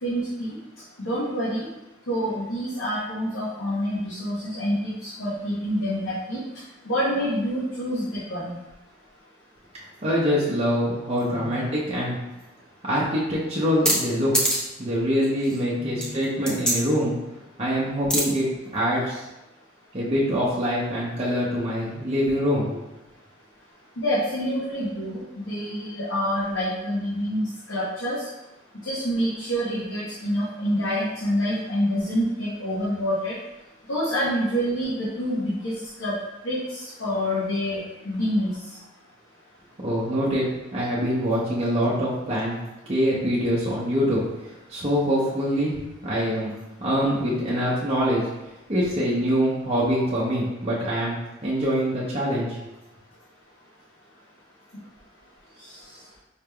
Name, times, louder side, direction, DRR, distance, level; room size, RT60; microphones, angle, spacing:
voice 1, 0.0-0.6 1.0-1.7 2.1-6.4 6.8-8.5 11.3-11.7 15.8-16.2 24.0-28.3 28.8-33.3 33.9-35.7 36.0-36.2 36.4-37.8 38.0-38.5 47.0-47.4, equal, 75° left, -8 dB, 0.9 m, -27 dB
voice 2, 10.0-12.2 12.8-14.4 14.8-17.1 17.6-19.2 19.9-22.7 39.8-42.6 42.9-44.2 44.7-46.5 46.8-48.2 48.7-51.1 51.4-52.6, equal, 30° right, -7 dB, 0.7 m, -24 dB
sound 1, 13.9-14.0 14.3-14.7 15.2-15.6 16.0-16.7 18.1-18.2, right 1 dB, 5° left, 0.7 m, -23 dB
4.8 x 3.3 x 2.2 m, 0.99 s
head